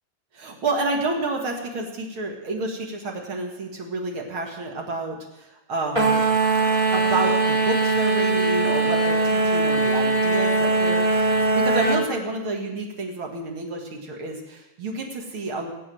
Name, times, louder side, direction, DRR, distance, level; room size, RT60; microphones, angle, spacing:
voice 1, 0.3-6.2 6.9-15.7, right 2 dB, 50° right, 0 dB, 1.5 m, -29 dB
sound 1, 5.9-12.0, right 2 dB, 20° right, 0.7 m, -21 dB
18.0 x 8.5 x 7.7 m, 0.95 s
omnidirectional pair, 5.2 m